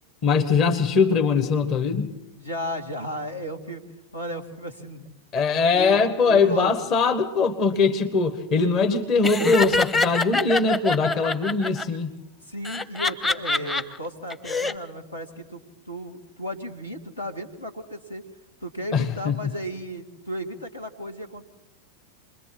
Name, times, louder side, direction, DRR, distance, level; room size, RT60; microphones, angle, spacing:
voice 1, 0.2-2.1 5.3-12.1 18.9-19.4, left 4 dB, 35° left, 7 dB, 1.5 m, -21 dB
voice 2, 2.4-3.8 4.1-5.1 5.7-6.7 8.9-9.0 12.4-15.6 15.9-18.2 18.6-21.5, equal, 80° left, 4 dB, 2.4 m, -34 dB
Laughter, 9.2-11.8 12.6-13.8 14.3-14.7, left 3 dB, 15° left, 1.0 m, -24 dB
29.0 x 22.0 x 4.3 m, 0.93 s
figure-of-eight pair, 90°, 0 cm